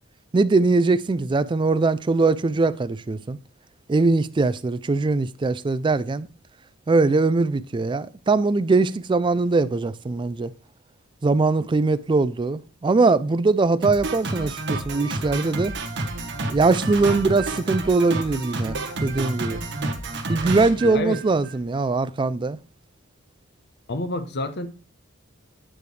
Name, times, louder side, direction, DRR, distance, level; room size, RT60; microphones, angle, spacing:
voice 1, 0.3-3.4 3.9-6.3 6.9-10.5 11.2-15.7 16.5-19.6 20.3-22.6, right 3 dB, 25° right, 0.3 m, -21 dB
Drum kit, 13.8-21.6, right 2 dB, 55° right, 1.3 m, -30 dB
voice 2, 20.8-21.2 23.9-24.7, left 2 dB, 50° left, 0.9 m, -28 dB
9.0 x 5.0 x 3.2 m
head